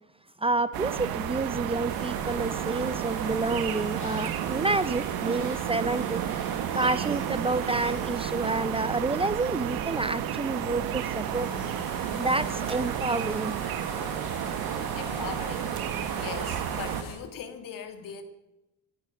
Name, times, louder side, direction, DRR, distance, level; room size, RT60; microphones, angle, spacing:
voice 1, 0.4-6.2 6.7-11.5 12.2-13.6, right 3 dB, 15° right, 15 dB, 0.6 m, -29 dB
sound 1, 0.7-17.0, right 10 dB, 85° right, 1.4 m, -31 dB
sound 2, 1.9-17.1, left 6 dB, 85° left, 6.0 m, -45 dB
sound 3, 3.0-8.1, left 3 dB, 35° left, 4.6 m, -54 dB
voice 2, 14.9-18.2, left 8 dB, 70° left, 7 dB, 2.6 m, -40 dB
18.0 x 12.5 x 6.4 m, 0.95 s
cardioid pair, 95°, 35 cm